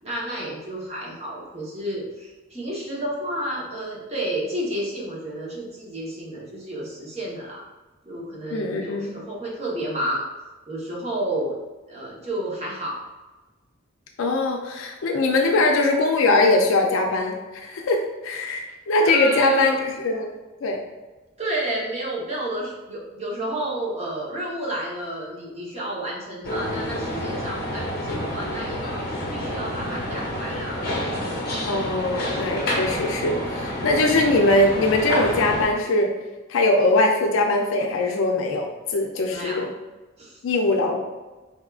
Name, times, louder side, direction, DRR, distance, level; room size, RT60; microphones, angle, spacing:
voice 1, 0.0-7.6 8.0-10.2 10.7-11.5 11.9-13.0 19.0-19.7 21.4-30.9 39.2-39.7 40.2-40.4, right 1 dB, 30° right, -5 dB, 0.9 m, -31 dB
voice 2, 8.5-9.1 14.2-20.3 20.6-20.8 31.7-36.1 36.5-39.7 40.4-41.0, left 2 dB, 80° left, 2 dB, 0.4 m, -21 dB
sound 1, 26.4-35.7, left 1 dB, 50° left, 0.8 m, -29 dB
4.3 x 3.5 x 2.3 m, 1.2 s
head